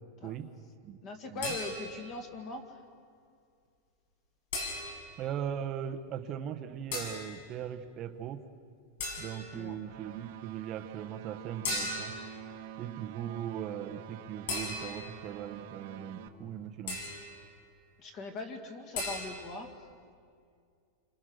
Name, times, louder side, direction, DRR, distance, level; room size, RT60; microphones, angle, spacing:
voice 1, 1.0-2.8 9.5-9.8 18.0-19.7, left 3 dB, 25° left, 5 dB, 2.1 m, -41 dB
sound 1, 1.4-2.1 4.5-5.2 6.9-7.3 9.0-9.6 11.6-12.3 14.5-15.2 16.9-17.3 18.9-19.3, left 2 dB, 65° left, 8.0 m, -36 dB
voice 2, 5.2-8.4 9.2-12.2 12.8-17.1, right 9 dB, 25° right, 6 dB, 1.1 m, -39 dB
sound 2, 9.8-16.3, right 11 dB, 50° right, 1.4 m, -46 dB
28.5 x 25.5 x 6.4 m, 2.3 s
supercardioid pair, 180°, 0 cm